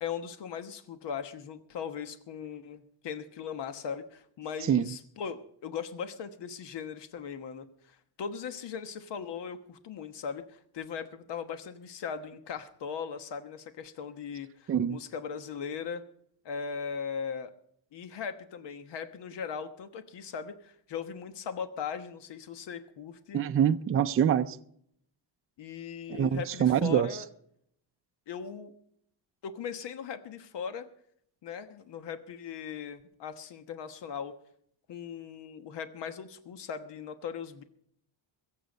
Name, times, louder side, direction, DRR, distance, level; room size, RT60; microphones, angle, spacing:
voice 1, 0.0-16.0 16.4-17.5 17.9-23.4 25.6-27.2 28.3-28.7 29.4-30.9 31.4-34.3 34.9-37.6, left 7 dB, 65° left, 1.3 m, -39 dB
voice 2, 14.7-15.0 23.3-24.6 26.1-27.1, right 9 dB, 30° right, 0.4 m, -25 dB
22.0 x 7.9 x 5.3 m
cardioid pair, 150°, 45 cm